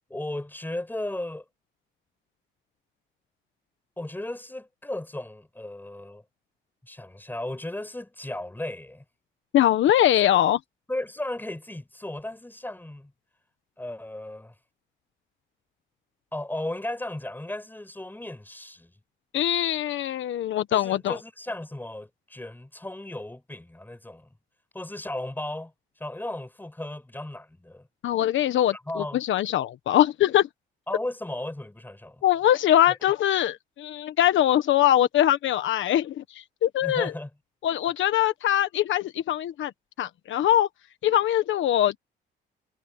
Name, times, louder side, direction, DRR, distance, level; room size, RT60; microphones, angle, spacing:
voice 1, 0.1-1.4 4.0-6.2 6.8-9.0 10.9-13.1 13.8-14.5 16.3-18.9 20.7-24.3 24.7-25.7 26.0-27.9 28.9-29.2 30.9-32.2 32.9-33.0 36.8-37.3, left 1 dB, 10° left, 5.3 m, -35 dB
voice 2, 9.5-10.6 19.3-21.2 28.0-30.5 32.2-36.2 36.6-37.1 37.6-39.7 40.0-40.7 41.0-42.0, left 12 dB, 75° left, 1.3 m, -22 dB
cardioid pair, 90°, 20 cm